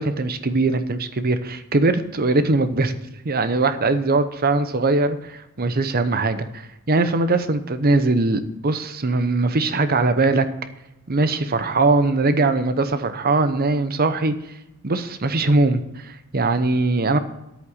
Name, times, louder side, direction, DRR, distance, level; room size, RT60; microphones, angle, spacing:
voice 1, 0.0-2.9 3.2-10.5 11.1-14.3 14.8-17.2, right 3 dB, 45° right, 11 dB, 0.8 m, -21 dB
10.5 x 8.6 x 6.5 m, 0.93 s
head